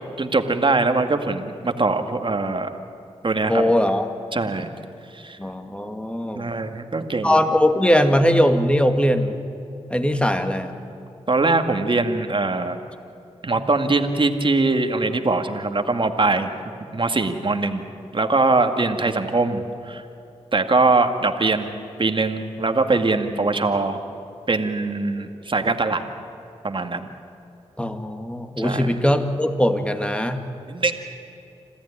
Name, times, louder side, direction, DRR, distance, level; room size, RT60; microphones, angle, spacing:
voice 1, 0.2-2.7 3.2-3.7 4.3-4.7 5.1-5.4 6.4-7.4 11.3-12.8 13.4-16.5 16.9-17.8 18.1-20.0 20.5-21.7 22.0-24.0 24.5-26.0 26.6-27.1 28.6-29.0 30.7-30.9, right 3 dB, 45° right, 6 dB, 2.0 m, -22 dB
voice 2, 3.5-4.0 5.4-6.5 7.2-9.4 9.9-10.7 27.8-30.4, equal, 10° left, 6 dB, 2.3 m, -20 dB
27.0 x 14.5 x 9.9 m, 2.7 s
cardioid pair, 40°, 12 cm